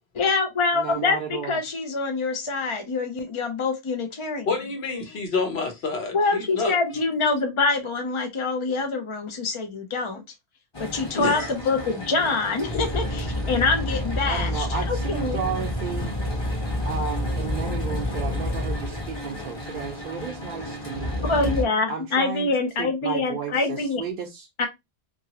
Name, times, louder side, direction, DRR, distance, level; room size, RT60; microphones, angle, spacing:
voice 1, 0.2-4.5 6.1-10.2 10.8-15.4 21.2-24.0 24.6-24.7, left 3 dB, 45° left, 0.4 m, -25 dB
voice 2, 0.7-1.6 14.2-16.1 16.8-21.4 21.9-22.5 22.8-24.5, right 6 dB, 60° right, 0.6 m, -33 dB
voice 3, 4.5-6.8 11.1-11.5, left 3 dB, 70° left, 1.1 m, -28 dB
sound 1, 10.7-21.6, left 1 dB, 25° left, 0.9 m, -29 dB
2.8 x 2.6 x 2.8 m
omnidirectional pair, 1.1 m